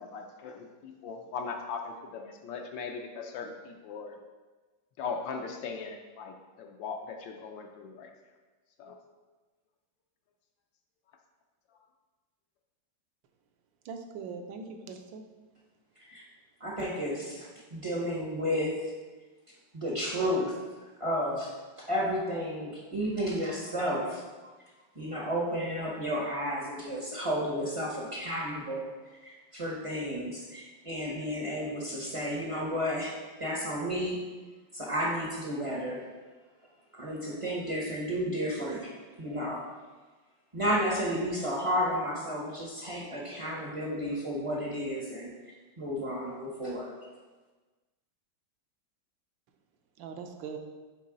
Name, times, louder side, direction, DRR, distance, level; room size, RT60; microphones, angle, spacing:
voice 1, 0.0-4.2 5.0-6.3 6.6-8.1 8.8-8.9, left 5 dB, 75° left, 3 dB, 1.3 m, -39 dB
voice 2, 13.8-15.2 50.0-50.6, right 5 dB, 75° right, 5 dB, 1.3 m, -41 dB
voice 3, 16.6-18.8 19.7-20.5 21.0-21.5 21.9-24.2 24.9-28.9 29.2-33.1 33.4-34.2 34.7-36.0 36.9-38.9 39.2-39.6 40.5-45.3 45.8-46.9, equal, 30° right, -4 dB, 0.5 m, -32 dB
8.4 x 3.8 x 3.8 m, 1.3 s
omnidirectional pair, 2.1 m